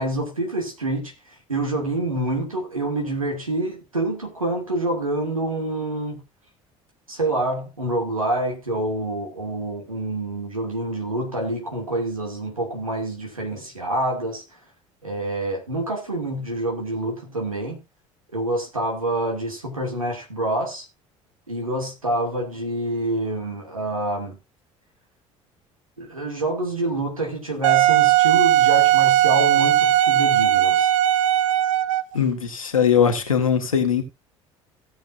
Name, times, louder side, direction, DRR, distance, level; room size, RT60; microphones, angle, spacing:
voice 1, 0.0-6.2 7.1-14.4 15.0-17.8 18.3-20.9 21.5-24.4 26.0-30.9, right 1 dB, 90° right, 2.6 m, -27 dB
Wind instrument woodwind instrument, 27.6-32.2, right 13 dB, 75° right, 0.6 m, -18 dB
voice 2, 32.1-34.0, left 7 dB, 85° left, 1.7 m, -20 dB
17.5 x 7.1 x 2.6 m
figure-of-eight pair, 60°, 17 cm